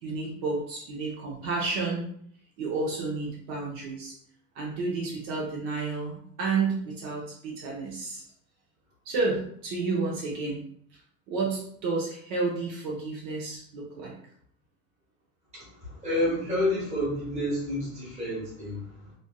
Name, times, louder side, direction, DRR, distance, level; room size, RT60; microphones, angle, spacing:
voice 1, 0.0-2.0 2.6-4.1 4.5-8.2 9.0-10.6 11.3-14.1, right 3 dB, 60° right, -3 dB, 0.8 m, -31 dB
voice 2, 15.5-19.1, left 1 dB, 15° right, -7 dB, 1.2 m, -30 dB
3.3 x 2.6 x 2.2 m, 0.64 s
cardioid pair, 175°, 41 cm